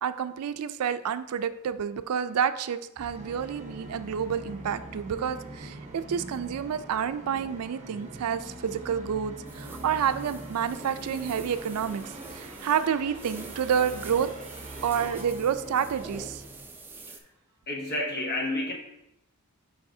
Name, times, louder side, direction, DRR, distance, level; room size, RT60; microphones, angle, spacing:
voice 1, 0.0-14.3 14.8-16.4, right 8 dB, 85° right, 12 dB, 0.4 m, -29 dB
Musical instrument, 3.0-16.7, right 1 dB, 30° right, 0.9 m, -43 dB
sound 1, 9.5-17.2, right 2 dB, 10° right, 0.4 m, -45 dB
voice 2, 17.7-18.7, left 1 dB, 50° left, -1 dB, 1.2 m, -30 dB
8.2 x 4.7 x 2.7 m, 0.86 s
head